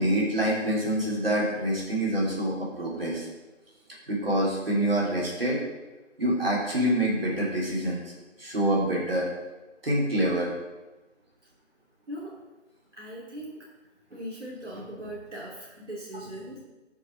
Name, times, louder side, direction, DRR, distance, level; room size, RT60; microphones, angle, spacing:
voice 1, 0.0-3.3 4.1-5.6 6.2-8.0 8.4-9.3 9.8-10.5, right 1 dB, 50° right, -5 dB, 3.4 m, -26 dB
voice 2, 12.1-12.4 12.9-13.7 14.1-16.6, equal, 70° right, -5 dB, 2.8 m, -39 dB
7.7 x 6.4 x 6.2 m, 1.1 s
figure-of-eight pair, 165°, 37 cm